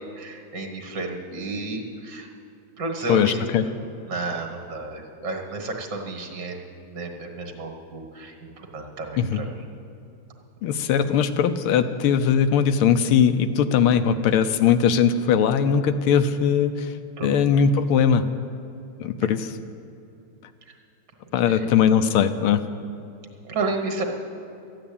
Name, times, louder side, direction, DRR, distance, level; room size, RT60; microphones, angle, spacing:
voice 1, 0.0-2.3 2.8-3.4 4.1-8.3 8.7-9.5 17.2-17.5 21.5-21.6 23.4-24.0, right 3 dB, 55° right, 3 dB, 2.2 m, -32 dB
voice 2, 3.1-3.7 9.2-9.4 10.6-16.9 17.2-18.2 19.0-19.6 21.3-22.6, left 7 dB, 90° left, 9 dB, 1.6 m, -20 dB
13.5 x 9.8 x 8.6 m, 2.6 s
omnidirectional pair, 2.3 m